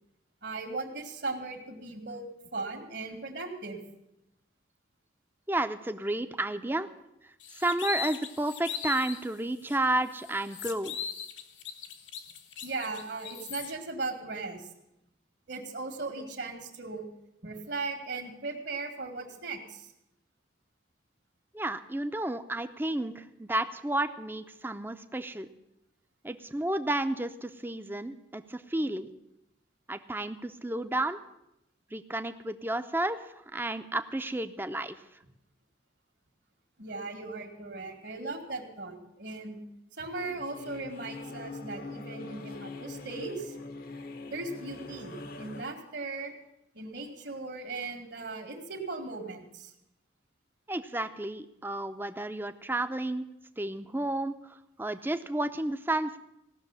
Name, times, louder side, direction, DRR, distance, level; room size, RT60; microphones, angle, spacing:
voice 1, 0.4-2.3 2.5-3.8 12.6-14.7 15.5-17.1 17.4-19.9 36.8-39.6 40.0-43.5 44.3-46.3 46.7-49.7, right 3 dB, 65° right, 5 dB, 2.2 m, -38 dB
voice 2, 5.5-6.9 7.5-10.9 21.5-25.5 26.2-29.1 29.9-31.2 31.9-33.2 33.5-35.0 50.7-53.3 53.6-56.2, right 1 dB, 10° right, 10 dB, 0.6 m, -31 dB
sound 1, 7.4-9.2 9.7-9.8 10.1-13.7, left 7 dB, 80° left, 1.2 m, -39 dB
sound 2, 40.2-45.6, left 3 dB, 50° left, 0.8 m, -43 dB
17.0 x 6.5 x 9.7 m, 0.85 s
head